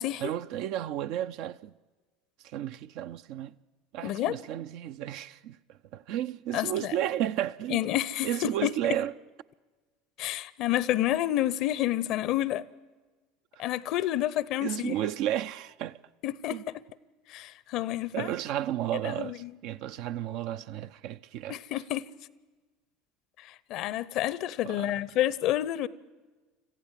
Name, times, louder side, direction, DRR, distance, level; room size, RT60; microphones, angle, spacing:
voice 1, 0.2-1.7 2.4-3.6 3.9-7.8 8.2-9.1 13.6-13.7 14.6-16.0 16.5-16.6 18.1-21.6 24.6-24.9, right 11 dB, 60° right, 0.6 m, -33 dB
voice 2, 4.0-4.4 6.5-6.9 7.7-9.0 10.2-12.6 13.6-15.0 16.2-16.8 17.3-18.3 19.0-19.5 21.5-22.1 23.4-25.9, left 13 dB, 55° left, 0.7 m, -29 dB
26.0 x 15.0 x 7.4 m
hypercardioid pair, 75°, 0 cm